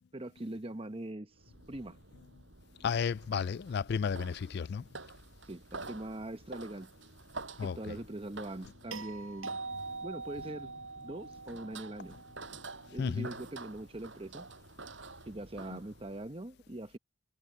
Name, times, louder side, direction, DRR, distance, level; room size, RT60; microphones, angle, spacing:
voice 1, 0.1-1.3 1.7-2.0 5.5-6.9 7.6-9.6 10.0-10.7 11.0-12.2 12.9-14.5 15.3-17.0, right 1 dB, 30° right, 1.0 m, -42 dB
sound 1, 1.4-16.2, right 3 dB, 65° right, 7.1 m, -49 dB
voice 2, 2.8-4.8 7.6-8.0 13.0-13.3, left 6 dB, 55° left, 0.3 m, -33 dB
sound 2, 8.9-13.2 15.4-15.5, right 4 dB, 90° right, 5.4 m, -44 dB
head